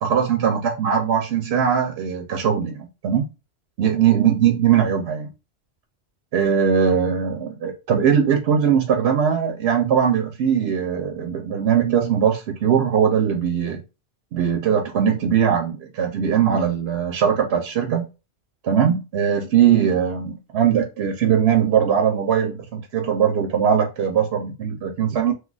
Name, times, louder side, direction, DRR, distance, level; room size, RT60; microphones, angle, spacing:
voice 1, 0.0-3.3 3.8-5.3 6.3-13.8 14.3-18.1 18.6-25.3, right 8 dB, 85° right, 4 dB, 0.8 m, -20 dB
2.5 x 2.3 x 3.8 m, 0.29 s
omnidirectional pair, 1.1 m